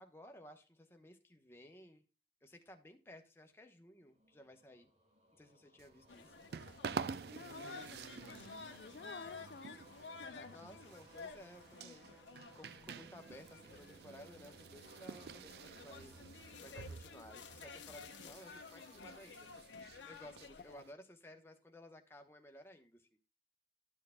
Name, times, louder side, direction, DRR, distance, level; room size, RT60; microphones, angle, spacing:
voice 1, 0.0-2.0 2.4-4.9 5.3-6.3 10.5-12.1 12.5-16.2 16.6-23.1, left 1 dB, 15° left, 0.9 m, -57 dB
sound 1, 3.9-18.3, right 1 dB, 35° right, 1.4 m, -66 dB
sound 2, 5.8-20.9, right 5 dB, 60° right, 0.3 m, -49 dB
sound 3, 6.1-20.7, left 5 dB, 90° left, 0.9 m, -53 dB
voice 2, 7.3-10.6 20.6-20.9, left 5 dB, 55° left, 0.4 m, -53 dB
12.0 x 6.4 x 2.2 m
head